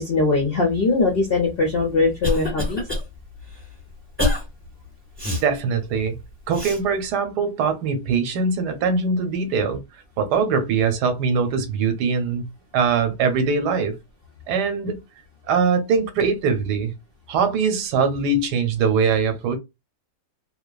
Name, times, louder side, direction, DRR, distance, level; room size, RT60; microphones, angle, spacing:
voice 1, 0.0-2.8, left 3 dB, 60° left, 0.6 m, -21 dB
Cough, 1.6-3.0 3.5-3.6 4.2-4.4 5.2-5.4 6.5-6.8, left 1 dB, 10° right, 1.2 m, -25 dB
voice 2, 5.4-6.2 6.5-9.8 10.2-12.5 12.7-14.0 14.5-15.0 15.5-16.9 17.3-19.6, right 5 dB, 85° right, 1.2 m, -22 dB
2.8 x 2.2 x 2.3 m
omnidirectional pair, 1.7 m